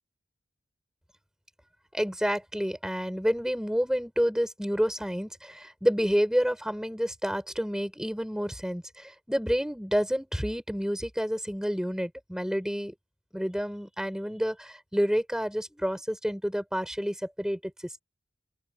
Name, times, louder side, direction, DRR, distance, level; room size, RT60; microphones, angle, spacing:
voice 1, 1.9-12.9 13.3-17.6, equal, 5° right, 6.0 m, -29 dB
open air
head